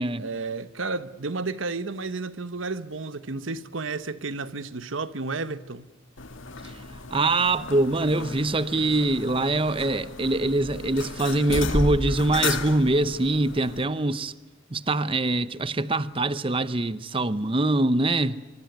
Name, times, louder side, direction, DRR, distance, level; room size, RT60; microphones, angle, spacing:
voice 1, 0.2-5.9, right 3 dB, 90° right, 1.2 m, -32 dB
sound 1, 6.2-13.8, left 3 dB, 85° left, 2.2 m, -33 dB
voice 2, 7.1-14.3 14.7-18.4, right 2 dB, 25° right, 0.8 m, -24 dB
24.5 x 24.0 x 9.3 m
head